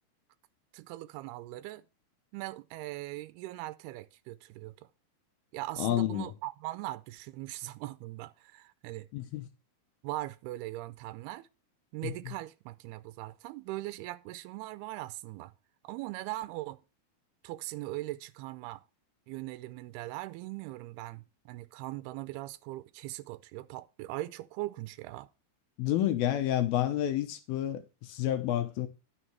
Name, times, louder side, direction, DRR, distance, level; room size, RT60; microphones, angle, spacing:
voice 1, 0.7-1.8 2.3-4.9 5.5-9.1 10.0-11.5 11.9-15.5 15.8-16.8 17.4-18.8 19.3-25.3, right 17 dB, 85° right, 2.6 m, -40 dB
voice 2, 5.8-6.3 9.1-9.5 12.0-12.3 25.8-28.9, left 12 dB, 80° left, 2.6 m, -30 dB
11.5 x 6.3 x 4.4 m
omnidirectional pair, 4.5 m